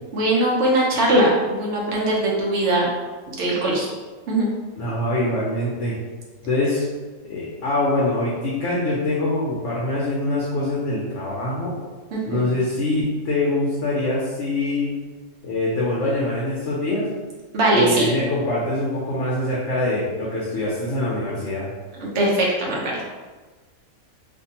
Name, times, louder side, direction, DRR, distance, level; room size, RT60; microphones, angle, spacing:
voice 1, 0.1-2.9 3.3-3.9 4.3-4.5 12.1-12.5 17.5-18.1 22.0-23.0, right 1 dB, 60° right, -3 dB, 0.9 m, -20 dB
voice 2, 4.8-6.0 6.4-6.9 7.2-11.8 12.2-14.9 15.4-17.1 17.7-21.7, left 2 dB, 65° left, -5 dB, 0.8 m, -24 dB
2.7 x 2.5 x 2.7 m, 1.3 s
omnidirectional pair, 1.5 m